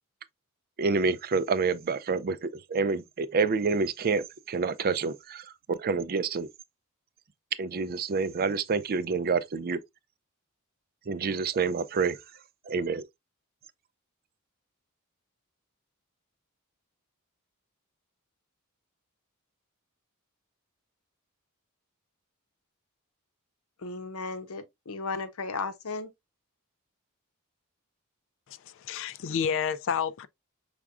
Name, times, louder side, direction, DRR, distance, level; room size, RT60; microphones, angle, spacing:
voice 1, 0.8-6.5 7.6-9.8 11.1-12.2 12.7-13.0, right 4 dB, 45° right, 0.4 m, -28 dB
voice 2, 23.8-26.1, left 4 dB, 80° left, 0.8 m, -35 dB
voice 3, 28.5-30.3, left 7 dB, 60° left, 0.4 m, -30 dB
5.9 x 3.5 x 2.4 m
head